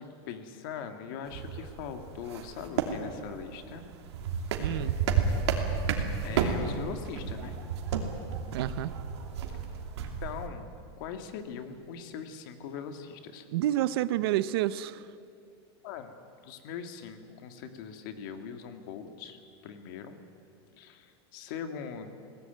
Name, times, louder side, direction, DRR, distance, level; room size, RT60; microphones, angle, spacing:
voice 1, 0.0-3.8 6.2-7.5 10.2-10.7 11.0-13.5 15.8-16.2 16.4-20.1 20.8-22.1, left 7 dB, 50° left, 7 dB, 2.1 m, -41 dB
sound 1, 1.2-10.5, right 6 dB, 85° right, 2.9 m, -32 dB
voice 2, 4.6-5.0 8.5-8.9 13.5-15.1, right 13 dB, 65° right, 15 dB, 0.7 m, -29 dB
22.0 x 18.0 x 9.3 m, 2.4 s
supercardioid pair, 175°, 14 cm